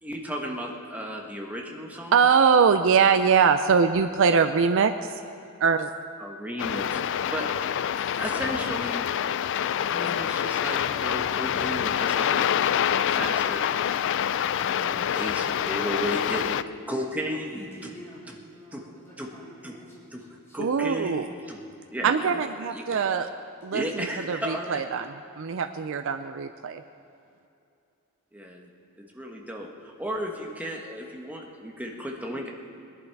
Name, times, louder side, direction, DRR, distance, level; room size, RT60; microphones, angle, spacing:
voice 1, 0.0-2.3 6.2-9.1 9.8-12.4 13.0-13.7 14.6-16.6 16.9-17.9 18.3-18.4 18.7-18.9 19.2-19.3 19.6-19.7 20.1-20.3 20.5-21.6 21.9-23.0 23.7-24.8 28.3-28.7 29.0-32.5, equal, 5° right, 0 dB, 1.3 m, -34 dB
voice 2, 2.1-4.9 5.6-5.9 20.6-21.3 22.0-23.3 23.6-25.1 25.4-26.8, right 6 dB, 65° right, 9 dB, 0.4 m, -22 dB
sound 1, 6.6-16.6, left 9 dB, 60° left, 0.3 m, -26 dB
voice 3, 15.8-16.5 17.5-20.7 31.8-31.9, equal, 10° left, -8 dB, 4.0 m, -48 dB
20.0 x 11.0 x 4.7 m, 2.6 s
head